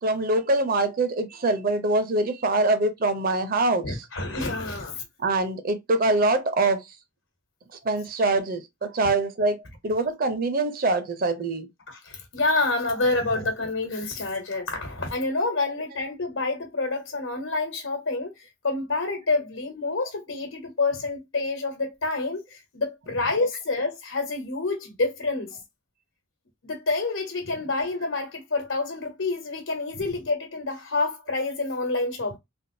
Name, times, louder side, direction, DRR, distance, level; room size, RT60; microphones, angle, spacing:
voice 1, 0.0-4.0 5.2-6.9 7.8-11.7 13.3-13.4, right 2 dB, 45° right, 0.7 m, -24 dB
voice 2, 3.8-5.0 11.9-25.6 26.6-32.4, left 3 dB, 85° left, 1.0 m, -28 dB
3.5 x 2.5 x 2.6 m
head